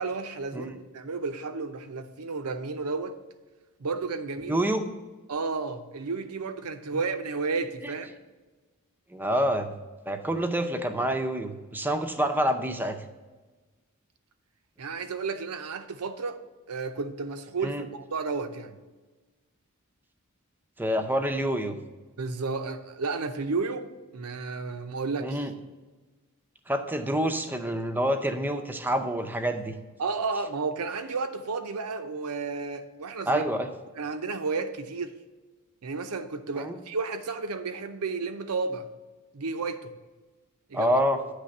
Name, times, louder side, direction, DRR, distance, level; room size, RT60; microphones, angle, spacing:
voice 1, 0.0-3.2 3.8-4.6 5.3-8.1 14.8-16.4 16.7-18.8 22.2-23.9 24.1-25.5 30.0-33.4 34.0-35.1 35.8-38.9 39.3-39.9 40.7-40.9, right 4 dB, 85° right, 0.6 m, -32 dB
voice 2, 4.5-4.9 7.8-7.9 9.1-9.7 10.1-13.0 17.6-17.9 20.8-21.8 25.2-25.5 26.7-29.7 33.3-33.7 36.5-36.8 40.7-41.2, equal, 10° right, 0.5 m, -27 dB
9.7 x 3.3 x 6.5 m
head